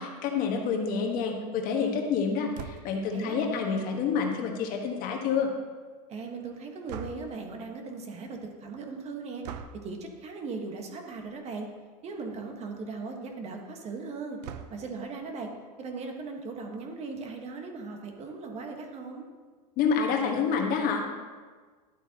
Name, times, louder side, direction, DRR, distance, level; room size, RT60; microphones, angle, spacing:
voice 1, 0.0-5.5 19.8-21.1, left 6 dB, 45° left, 2 dB, 1.3 m, -28 dB
sound 1, 2.5-3.1 6.9-7.5 9.4-9.9 11.1-11.4 11.8-11.9 12.1-12.2 14.4-15.0, right 8 dB, 70° right, 0.7 m, -42 dB
voice 2, 3.1-3.9 6.1-9.4 9.7-11.7 12.0-14.4 14.7-15.5 15.8-19.2, right 4 dB, 30° right, 3 dB, 1.3 m, -38 dB
11.5 x 8.1 x 2.9 m, 1.5 s
supercardioid pair, 125°, 21 cm